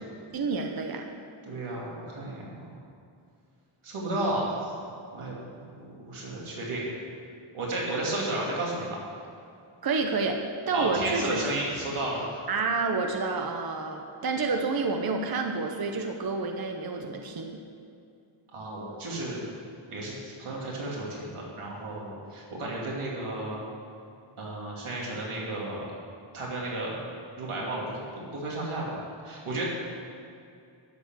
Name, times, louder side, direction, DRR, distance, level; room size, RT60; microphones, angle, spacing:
voice 1, 0.3-1.1 9.8-11.4 12.5-17.6, right 4 dB, 45° right, 3 dB, 0.9 m, -29 dB
voice 2, 1.5-2.7 3.8-4.8 5.1-6.8 7.5-9.0 10.7-12.4 18.5-19.4 19.9-23.6 24.4-25.9 26.3-27.0 27.4-29.7, right 2 dB, 85° right, -4 dB, 2.8 m, -33 dB
12.0 x 7.0 x 8.0 m, 2.4 s
wide cardioid pair, 170°, 49 cm